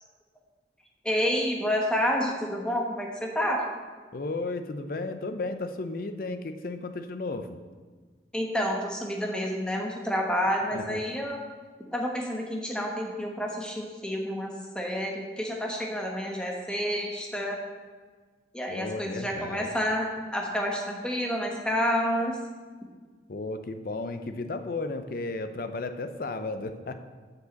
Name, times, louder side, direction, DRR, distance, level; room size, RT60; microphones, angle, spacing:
voice 1, 1.0-3.6 8.3-11.4 11.9-17.6 18.5-22.4, equal, 5° left, 0 dB, 1.0 m, -29 dB
voice 2, 4.1-7.6 10.7-11.0 18.7-19.7 23.3-27.0, left 3 dB, 50° left, 9 dB, 0.5 m, -34 dB
6.6 x 4.8 x 6.9 m, 1.5 s
head